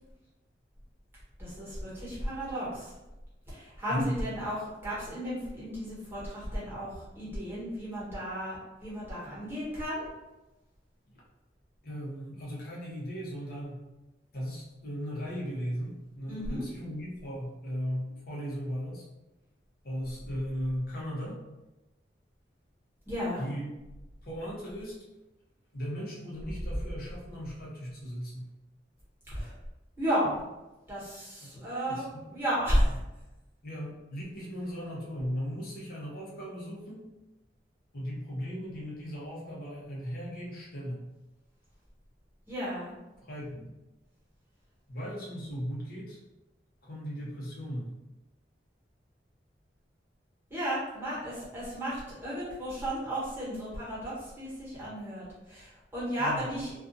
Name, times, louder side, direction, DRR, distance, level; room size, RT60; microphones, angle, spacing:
voice 1, 1.4-2.9 3.5-10.0 16.3-16.6 23.1-23.4 29.3-29.5 30.0-30.4 30.9-33.0 42.5-42.9 50.5-56.7, equal, 10° right, -9 dB, 1.2 m, -33 dB
voice 2, 11.8-13.8 14.3-19.1 19.8-21.4 23.4-23.7 24.2-25.0 25.7-28.5 31.4-32.2 32.9-33.0 33.6-37.1 37.9-41.0 43.2-43.7 44.9-46.2 46.8-47.9 56.2-56.5, equal, 55° left, -5 dB, 0.8 m, -37 dB
2.4 x 2.4 x 2.6 m, 1.0 s
head